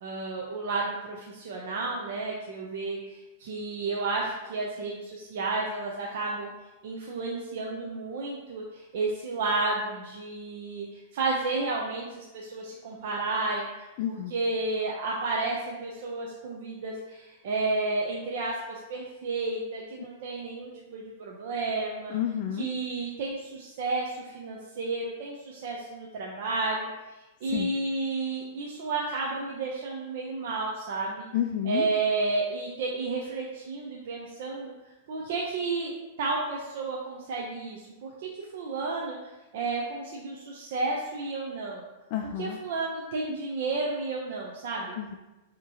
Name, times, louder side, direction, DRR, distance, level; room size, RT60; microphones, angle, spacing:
voice 1, 0.0-6.5 6.8-13.7 14.1-22.1 22.6-26.9 27.4-31.3 31.6-34.7 35.1-39.2 39.5-41.8 42.4-45.0, right 3 dB, 60° right, -2 dB, 0.6 m, -32 dB
voice 2, 14.0-14.3 20.0-20.1 22.1-22.7 27.5-27.7 31.3-31.9 42.1-42.6 45.0-45.2, left 10 dB, 45° left, 2 dB, 0.3 m, -30 dB
6.1 x 2.9 x 2.8 m, 1.1 s
supercardioid pair, 155°, 0 cm